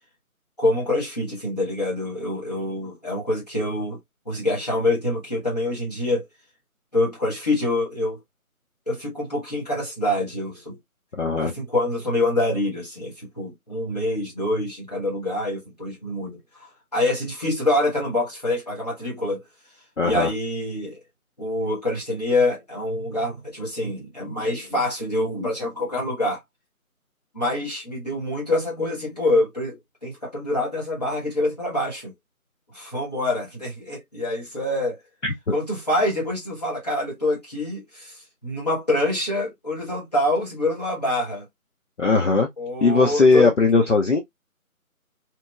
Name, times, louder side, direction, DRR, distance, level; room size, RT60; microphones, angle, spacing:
voice 1, 0.6-4.0 4.2-6.3 6.9-8.2 8.9-10.8 11.3-19.4 20.0-21.0 21.4-26.4 27.3-32.1 32.7-35.0 35.5-41.4 42.6-43.5, left 1 dB, 30° left, 1.2 m, -26 dB
voice 2, 11.2-11.5 20.0-20.3 35.2-35.5 42.0-42.5 42.8-44.2, left 4 dB, 55° left, 0.7 m, -19 dB
2.9 x 2.7 x 2.2 m
figure-of-eight pair, 170°, 43 cm